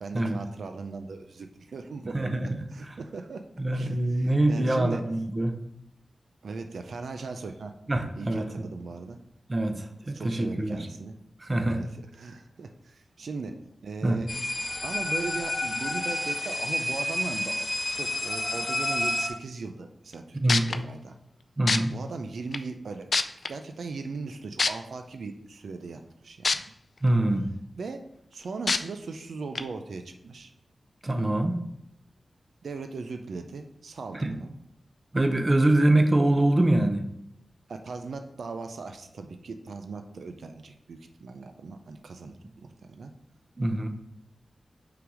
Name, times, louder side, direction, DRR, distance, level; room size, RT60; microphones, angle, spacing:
voice 1, 0.0-2.3 2.7-3.5 3.7-5.0 6.4-7.7 8.2-9.2 9.7-9.8 10.1-11.2 11.7-11.9 12.2-14.3 14.8-21.2 21.9-23.1 23.5-26.6 27.8-30.5 32.6-34.5 37.7-43.1, right 4 dB, 90° right, 6 dB, 0.4 m, -38 dB
voice 2, 2.1-3.0 3.6-5.6 7.9-8.7 9.5-10.9 11.4-11.8 14.0-14.2 20.3-20.7 21.6-21.9 27.0-27.5 31.0-31.6 34.1-34.4 35.1-37.1 43.6-43.9, right 1 dB, 30° right, 6 dB, 0.7 m, -24 dB
sound 1, 14.3-19.3, left 1 dB, 30° left, 1.3 m, -30 dB
sound 2, 20.1-20.2 20.5-20.8 21.7-21.8 22.5-22.6 23.1-23.5 24.6-24.7 26.4-26.5 27.1-27.2 28.7-28.8 29.5-29.6, left 4 dB, 60° left, 0.3 m, -23 dB
5.7 x 3.9 x 4.9 m, 0.75 s
wide cardioid pair, 90°, 0 cm